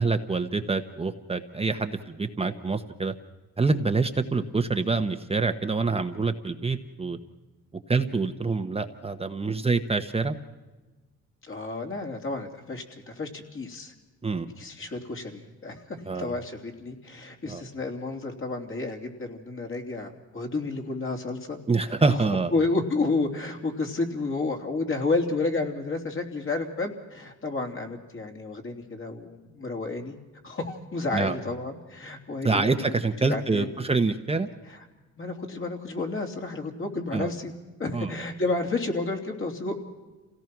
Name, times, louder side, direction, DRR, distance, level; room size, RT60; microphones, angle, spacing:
voice 1, 0.0-3.1 3.6-7.2 7.9-10.4 14.2-14.5 16.0-16.3 17.5-17.6 21.7-22.5 31.1-31.4 32.4-34.5 37.1-37.3 37.9-38.2, right 3 dB, 20° right, 6 dB, 1.0 m, -26 dB
voice 2, 11.4-13.9 14.6-22.2 22.5-30.2 30.4-32.7 33.3-33.8 34.7-34.8 35.2-37.5 37.8-39.7, left 3 dB, 45° left, 2 dB, 3.3 m, -31 dB
27.5 x 17.5 x 6.0 m, 1.2 s
cardioid pair, 90°, 30 cm